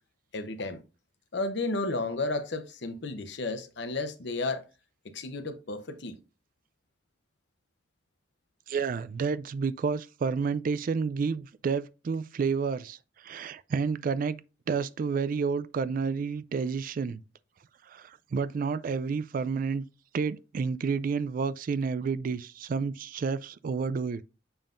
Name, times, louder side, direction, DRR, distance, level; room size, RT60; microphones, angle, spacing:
voice 1, 0.3-0.8 1.3-4.6 5.0-6.2, left 2 dB, 65° left, 0.8 m, -32 dB
voice 2, 8.7-14.4 14.7-17.2 17.9-19.8 20.1-24.2, right 5 dB, 45° right, 0.3 m, -30 dB
6.9 x 5.6 x 2.5 m
head